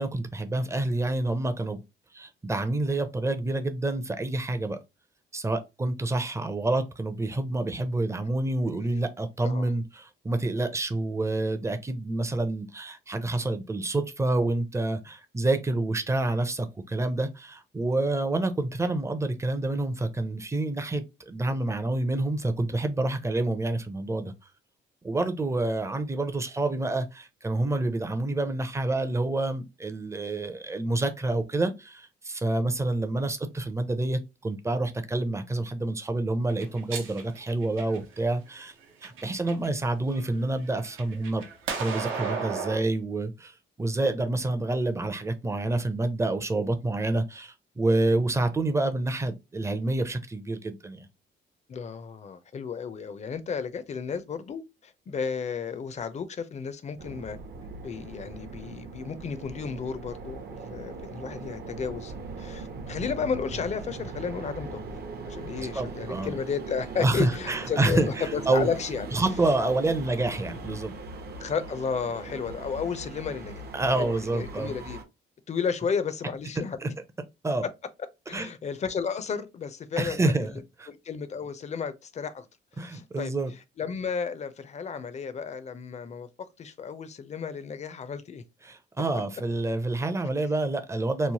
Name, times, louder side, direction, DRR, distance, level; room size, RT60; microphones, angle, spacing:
voice 1, 0.0-1.8 2.1-4.8 5.3-24.3 25.0-38.7 39.0-41.4 41.8-51.1 65.7-66.3 67.0-68.7 69.1-70.9 73.7-74.7 76.8-76.9 77.4-77.6 78.3-78.5 80.0-80.9 82.8-83.5 88.6-91.3, right 2 dB, 15° right, 0.5 m, -28 dB
sound 1, 36.5-38.2 38.8-39.7 40.1-42.8, right 5 dB, 85° right, 0.8 m, -35 dB
voice 2, 51.7-57.4 57.8-65.0 65.2-69.1 71.4-73.6 73.9-75.0 75.5-76.8 78.3-80.5 80.9-82.5 82.8-83.3 83.8-88.4, left 6 dB, 35° left, 0.5 m, -33 dB
sound 2, 57.0-75.0, right 3 dB, 55° right, 0.7 m, -40 dB
3.1 x 2.0 x 2.8 m
cardioid pair, 90°, 20 cm